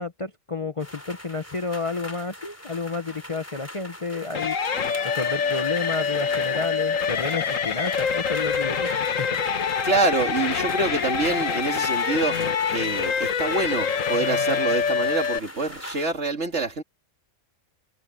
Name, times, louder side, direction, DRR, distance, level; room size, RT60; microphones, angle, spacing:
voice 1, 0.0-4.6 5.1-9.4, left 4 dB, 30° left, 0.7 m, -31 dB
sound 1, 0.8-16.1, left 1 dB, 10° left, 3.8 m, -42 dB
sound 2, 4.3-15.4, left 6 dB, 90° left, 1.7 m, -25 dB
voice 2, 9.8-12.4 12.7-16.8, right 3 dB, 65° right, 2.7 m, -26 dB
omnidirectional pair, 1.3 m